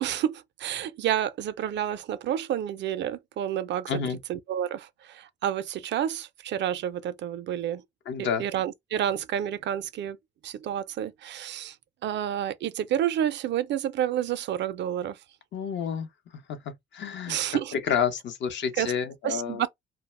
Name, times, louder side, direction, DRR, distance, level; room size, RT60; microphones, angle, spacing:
voice 1, 0.0-4.0 4.3-7.8 8.2-10.2 10.4-11.8 12.0-15.2 17.3-17.7 18.8-18.9 19.2-19.7, right 10 dB, 65° right, 0.4 m, -29 dB
voice 2, 3.9-4.2 8.1-8.5 15.5-16.1 16.5-19.7, left 7 dB, 65° left, 0.7 m, -30 dB
2.3 x 2.1 x 3.0 m
cardioid pair, 90°, 20 cm